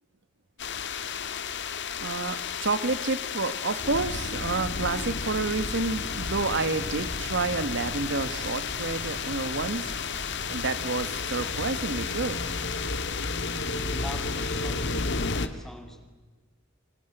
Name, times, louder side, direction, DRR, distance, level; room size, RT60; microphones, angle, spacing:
sound 1, 0.6-15.5, left 5 dB, 60° left, 1.6 m, -32 dB
voice 1, 2.0-9.9 10.5-12.4, right 3 dB, 60° right, 13 dB, 1.2 m, -29 dB
sound 2, 5.9-12.9, equal, 45° right, 4.0 m, -44 dB
voice 2, 13.6-16.0, equal, ahead, 5 dB, 2.7 m, -44 dB
30.0 x 23.5 x 7.9 m, 1.3 s
head